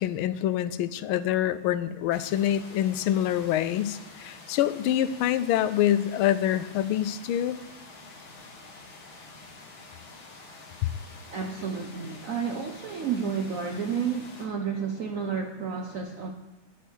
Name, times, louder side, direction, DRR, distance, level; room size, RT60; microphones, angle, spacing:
voice 1, 0.0-7.6, left 11 dB, 90° left, 14 dB, 1.4 m, -26 dB
sound 1, 2.1-14.5, left 3 dB, 70° left, 2.4 m, -48 dB
voice 2, 11.3-16.3, right 6 dB, 70° right, 4 dB, 0.7 m, -31 dB
11.0 x 10.5 x 4.6 m, 1.0 s
omnidirectional pair, 2.3 m